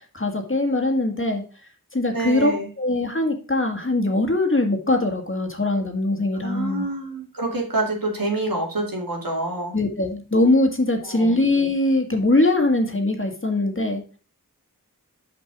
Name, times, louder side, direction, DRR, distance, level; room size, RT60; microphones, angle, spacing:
voice 1, 0.1-1.4 1.9-6.9 9.7-14.0, left 2 dB, 35° left, 4 dB, 1.8 m, -22 dB
voice 2, 2.1-2.7 6.4-9.7 11.0-11.3, right 2 dB, 80° right, 0 dB, 2.4 m, -27 dB
6.1 x 5.2 x 4.8 m, 0.36 s
wide cardioid pair, 45°, 34 cm